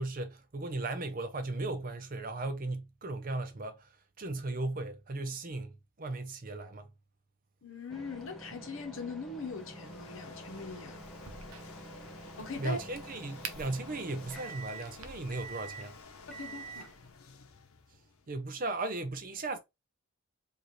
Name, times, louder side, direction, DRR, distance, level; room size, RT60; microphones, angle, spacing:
voice 1, 0.0-3.9 4.2-5.7 6.0-6.9 12.6-15.9 18.3-19.6, right 2 dB, 40° right, 0.6 m, -36 dB
voice 2, 7.6-11.0 12.4-12.8 16.3-16.9, left 3 dB, 65° left, 1.0 m, -41 dB
sound 1, 7.9-17.1, right 3 dB, ahead, 0.8 m, -48 dB
sound 2, 9.2-18.4, left 5 dB, 80° left, 0.8 m, -53 dB
Crack, 11.0-16.0, right 6 dB, 85° right, 0.7 m, -49 dB
4.8 x 2.5 x 3.1 m
head